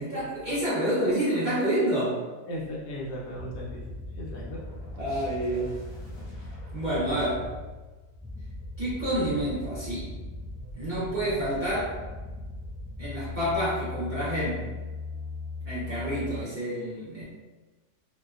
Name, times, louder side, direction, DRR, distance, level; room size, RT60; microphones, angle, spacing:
voice 1, 0.0-2.2 5.0-5.8 6.7-7.5 8.8-10.1 10.8-12.0 13.0-14.7 15.6-17.2, right 1 dB, 60° right, -11 dB, 0.4 m, -28 dB
voice 2, 2.5-4.6 5.1-5.3, equal, 75° left, -3 dB, 1.1 m, -37 dB
sound 1, 3.4-16.4, left 2 dB, 50° left, 0.3 m, -39 dB
2.8 x 2.1 x 2.3 m, 1.2 s
omnidirectional pair, 1.8 m